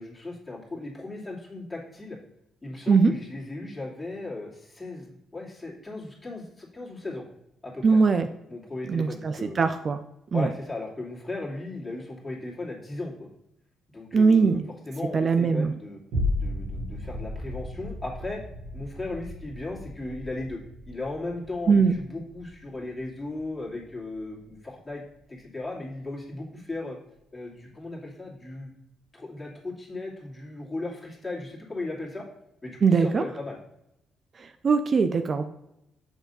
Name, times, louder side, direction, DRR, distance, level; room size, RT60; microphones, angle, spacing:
voice 1, 0.0-2.2 2.6-7.2 7.6-7.8 8.5-9.6 10.3-13.3 13.9-14.6 14.9-16.0 16.4-18.4 18.7-25.0 25.3-27.0 27.3-28.7 29.1-32.3 32.6-33.6, left 2 dB, 15° left, -4 dB, 2.6 m, -36 dB
voice 2, 7.8-8.3 8.9-10.0 10.3-10.5 14.1-14.7 15.1-15.7 21.7-21.9 32.8-33.2 34.4-35.4, right 5 dB, 45° right, 8 dB, 0.5 m, -21 dB
sound 1, 16.1-24.7 25.1-25.2, left 1 dB, 80° right, 2.4 m, -35 dB
7.2 x 3.3 x 5.4 m, 0.83 s
cardioid pair, 90°, 0 cm